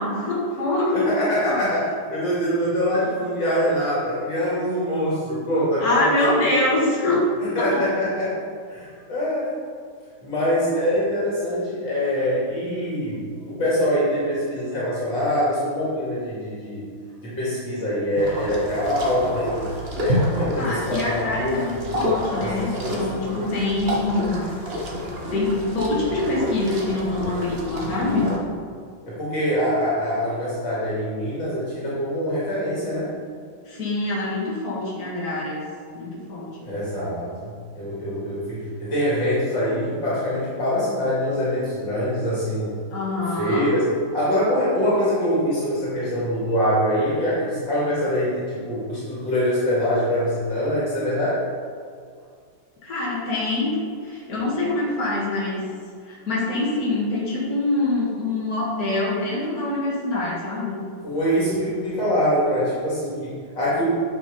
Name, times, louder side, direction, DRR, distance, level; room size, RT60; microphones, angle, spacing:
voice 1, 0.0-1.6 5.8-7.2 7.6-7.8 20.6-24.5 25.3-28.3 33.7-35.6 35.9-36.7 42.9-43.7 52.8-53.8 54.0-55.7 56.1-60.8, left 2 dB, 50° left, -6 dB, 2.6 m, -25 dB
voice 2, 0.9-6.4 7.4-8.4 8.7-9.5 10.2-16.9 17.2-22.0 22.4-23.4 29.1-33.2 36.6-37.5 37.7-42.7 43.4-51.4 61.0-63.8, equal, 65° left, -8 dB, 3.2 m, -24 dB
sound 1, 18.1-28.4, left 1 dB, 35° right, 1.3 m, -29 dB
9.2 x 5.9 x 5.4 m, 2.1 s
omnidirectional pair, 2.1 m